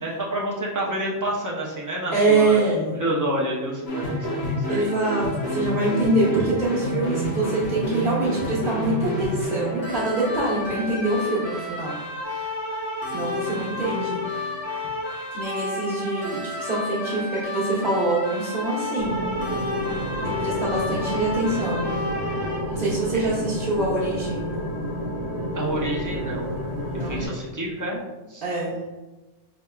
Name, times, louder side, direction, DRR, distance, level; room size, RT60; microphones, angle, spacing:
voice 1, 0.0-2.7 3.0-4.9 23.1-23.4 25.5-26.5 26.9-28.0 28.3-28.4, right 1 dB, 20° right, -4 dB, 0.5 m, -28 dB
voice 2, 2.1-3.0 4.7-12.0 13.1-14.2 15.3-19.2 20.2-21.9 22.7-24.4 26.9-27.2 28.4-28.7, right 2 dB, 45° right, -9 dB, 1.1 m, -24 dB
sound 1, 3.9-22.6, left 1 dB, 60° left, 1.2 m, -30 dB
sound 2, 19.0-27.3, equal, 15° left, 1.0 m, -30 dB
4.9 x 3.3 x 2.3 m, 1.1 s
omnidirectional pair, 1.2 m